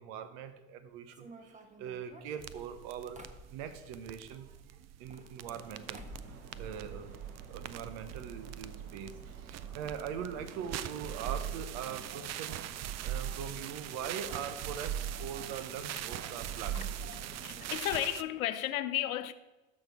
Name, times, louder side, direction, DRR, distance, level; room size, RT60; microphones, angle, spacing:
voice 1, 0.0-3.2 3.5-6.0 6.6-7.1 7.5-16.9, right 8 dB, 65° right, 1.1 m, -42 dB
sound 1, 1.1-4.0 4.9-5.7 5.9-6.4 6.7-7.5 7.7-7.8 8.0-8.1 8.8-8.9 9.2-9.4, right 1 dB, 15° right, 1.3 m, -52 dB
sound 2, 2.4-18.2, right 10 dB, 40° right, 0.6 m, -41 dB
sound 3, 5.4-17.8, right 4 dB, 85° right, 1.1 m, -52 dB
voice 2, 17.2-19.3, left 13 dB, 85° left, 0.6 m, -33 dB
12.5 x 4.4 x 6.0 m
hypercardioid pair, 65°, 41 cm